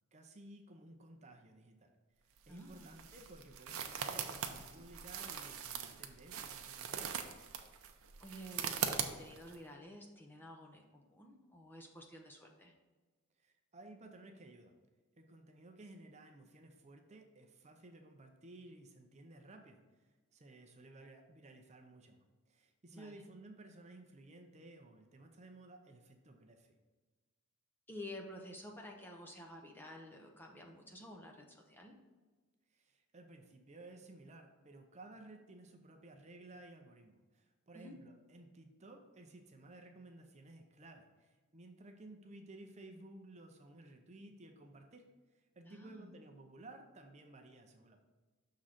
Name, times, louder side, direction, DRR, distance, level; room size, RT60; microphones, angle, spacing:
voice 1, 0.1-1.9 2.2-7.1 13.4-14.7 15.2-19.8 20.3-26.8 32.7-45.0 45.6-48.0, right 2 dB, 30° right, 4 dB, 0.6 m, -56 dB
sound 1, 2.4-9.6, right 7 dB, 70° right, 0.6 m, -41 dB
voice 2, 2.5-2.9 8.2-12.7 22.9-23.2 27.9-32.0 37.7-38.0 45.6-46.1, left 1 dB, 10° left, 1 dB, 0.6 m, -51 dB
6.2 x 3.8 x 5.7 m, 1.3 s
head